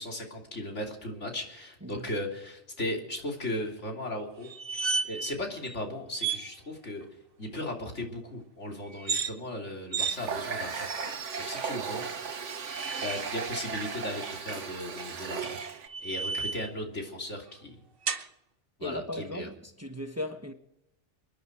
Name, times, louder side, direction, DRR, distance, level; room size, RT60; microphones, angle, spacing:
voice 1, 0.0-4.5 5.0-7.1 7.4-11.1 11.4-12.1 13.0-15.6 16.0-17.8 18.8-19.5, left 1 dB, 80° left, 3.5 m, -37 dB
sound 1, 4.4-5.3 5.6-5.8 6.2-6.4 8.9-9.3 9.9-10.2 10.9-11.4 12.4-13.2 15.1-16.7 18.1-18.3, right 5 dB, 50° right, 1.3 m, -33 dB
Water tap faucet, 10.1-15.9, right 6 dB, 80° right, 1.6 m, -36 dB
voice 2, 18.8-20.5, left 1 dB, 15° right, 1.2 m, -37 dB
28.0 x 10.5 x 4.7 m
omnidirectional pair, 1.2 m